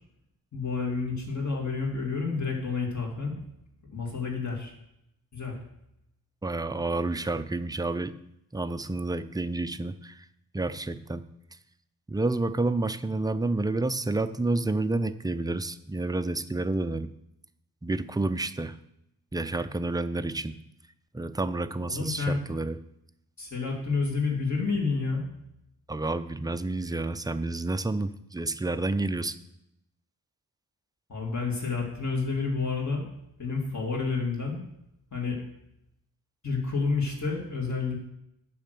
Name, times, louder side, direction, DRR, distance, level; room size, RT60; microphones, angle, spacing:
voice 1, 0.5-3.4 3.9-4.7 5.3-5.6 21.9-22.4 23.4-25.2 31.1-33.0 33.4-34.6 35.1-35.4 36.4-38.0, left 4 dB, 45° left, 0 dB, 2.4 m, -29 dB
voice 2, 6.4-8.1 8.5-10.3 10.5-11.2 12.1-17.1 17.8-18.8 19.3-20.5 21.1-22.8 25.9-29.4, right 2 dB, 10° right, 11 dB, 0.3 m, -29 dB
9.0 x 6.2 x 6.7 m, 0.82 s
wide cardioid pair, 140°, 39 cm